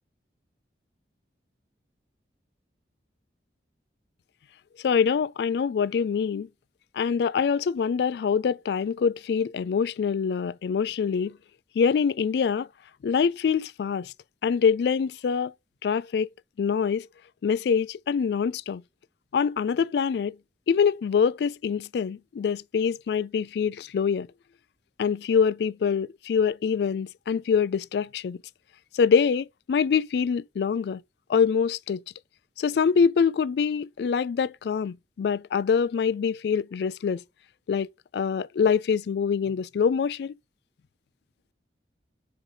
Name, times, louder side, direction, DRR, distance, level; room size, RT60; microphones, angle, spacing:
voice 1, 4.8-6.5 6.9-11.4 11.8-12.7 13.0-14.1 14.4-15.5 15.8-16.3 16.6-17.1 17.4-18.8 19.3-20.4 20.7-24.3 25.0-28.4 28.9-31.0 31.3-32.0 32.6-37.2 37.7-37.9 38.1-40.3, left 6 dB, 65° left, 0.3 m, -25 dB
5.1 x 4.9 x 3.8 m
head